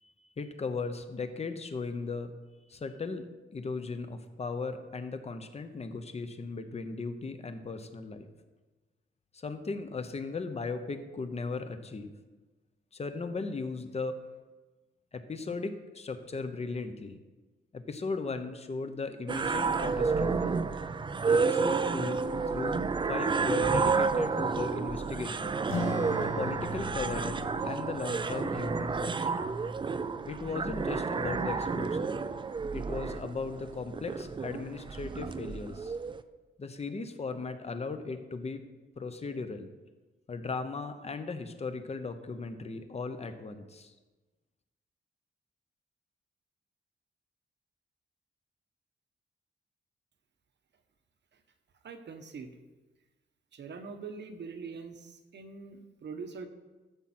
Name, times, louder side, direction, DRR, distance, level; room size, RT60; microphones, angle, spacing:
voice 1, 0.0-2.3 2.7-3.3 3.5-8.3 9.3-12.1 12.9-14.1 15.1-17.2 17.7-20.5 21.3-22.8 23.1-25.6 26.2-27.4 27.6-29.3 30.2-32.2 32.7-35.9 36.6-38.7 39.0-39.7 40.3-43.9, left 4 dB, 30° left, 8 dB, 0.8 m, -37 dB
sound 1, 19.3-36.2, right 4 dB, 25° right, 0.4 m, -30 dB
sound 2, 25.6-30.7, left 2 dB, 85° left, 1.6 m, -41 dB
voice 2, 51.8-52.5 53.5-56.5, right 5 dB, 60° right, 7 dB, 1.1 m, -43 dB
14.0 x 7.4 x 4.3 m, 1.2 s
wide cardioid pair, 170°, 21 cm